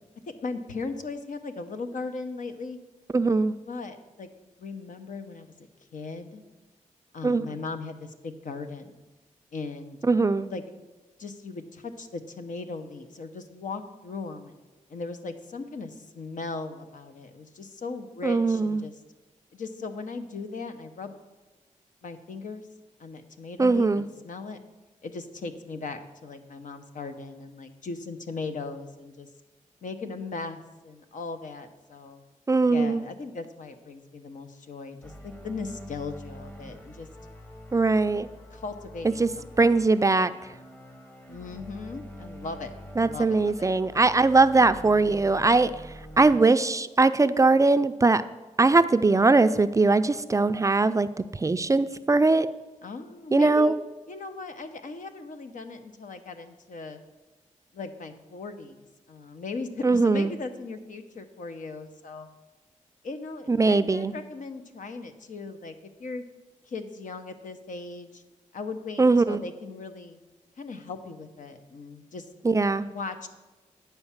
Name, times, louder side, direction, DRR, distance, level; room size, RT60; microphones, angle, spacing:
voice 1, 0.4-2.8 3.7-4.3 4.6-5.5 5.9-6.4 7.1-9.0 9.5-10.0 10.5-10.6 11.2-14.5 14.9-19.0 19.5-21.2 22.0-22.7 23.0-24.6 25.0-29.3 29.8-32.2 32.7-37.1 38.5-39.8 41.3-43.7 52.8-53.7 54.1-57.0 57.7-62.3 63.0-66.2 66.7-68.2 68.5-70.2 70.6-72.3 72.8-73.3, left 4 dB, 75° left, 7 dB, 0.8 m, -38 dB
voice 2, 3.1-3.5 7.2-7.5 10.1-10.5 18.2-18.9 23.6-24.0 32.5-33.0 37.7-38.3 39.2-39.3 39.6-40.3 43.0-45.7 46.2-48.2 48.6-51.1 51.3-52.5 53.3-53.8 59.8-60.3 63.5-64.1 69.0-69.4 72.4-72.9, right 3 dB, 25° right, 12 dB, 0.4 m, -21 dB
sound 1, 35.0-46.4, equal, 15° left, 0.9 m, -45 dB
9.6 x 4.5 x 7.2 m, 1.1 s
cardioid pair, 75°, 13 cm